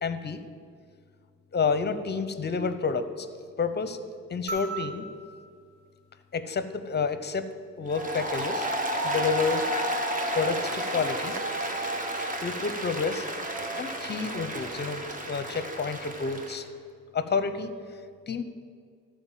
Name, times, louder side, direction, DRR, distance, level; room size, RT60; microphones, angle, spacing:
voice 1, 0.0-0.4 1.5-3.3 3.6-4.0 4.3-5.1 6.3-7.5 7.8-8.7 9.0-9.6 10.3-11.3 12.4-13.2 13.8-16.7 17.1-17.7 18.3-18.4, left 5 dB, 35° left, 11 dB, 0.7 m, -29 dB
sound 1, 4.5-7.0 8.6-8.7, right 3 dB, 65° right, 2.3 m, -40 dB
Applause, 7.9-16.6, right 1 dB, 25° right, 1.3 m, -31 dB
13.5 x 4.6 x 7.3 m, 2.2 s
cardioid pair, 90°, 30 cm